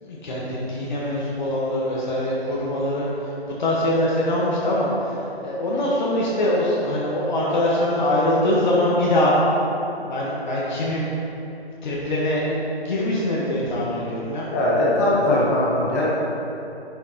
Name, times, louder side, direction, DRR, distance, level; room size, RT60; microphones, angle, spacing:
voice 1, 0.0-3.3 3.6-9.3 10.0-11.1 11.8-14.5, left 1 dB, 45° left, -6 dB, 1.3 m, -23 dB
voice 2, 14.5-16.0, left 1 dB, 15° left, -6 dB, 1.0 m, -20 dB
10.0 x 5.9 x 2.9 m, 2.9 s
hypercardioid pair, 160°, 32 cm